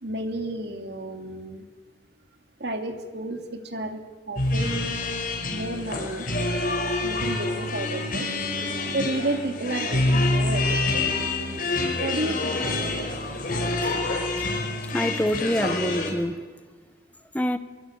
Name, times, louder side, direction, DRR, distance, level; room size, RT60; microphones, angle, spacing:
voice 1, 0.0-1.6 2.6-4.9 5.5-6.3 7.0-8.3 8.9-11.1 12.0-13.1, right 1 dB, 70° right, 2.4 m, -32 dB
sound 1, 4.4-16.1, left 2 dB, 55° left, 5.3 m, -27 dB
voice 2, 14.9-16.4 17.3-17.6, equal, 10° left, 0.9 m, -26 dB
25.5 x 23.0 x 8.7 m
head